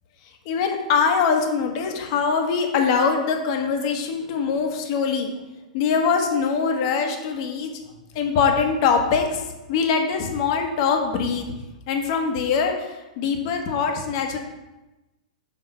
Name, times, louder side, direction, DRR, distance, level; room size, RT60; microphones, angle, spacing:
voice 1, 0.4-5.3 5.7-7.7 8.1-11.5 11.9-14.4, left 5 dB, 45° left, 4 dB, 1.2 m, -23 dB
6.1 x 4.9 x 4.4 m, 1.0 s
hypercardioid pair, 145°, 4 cm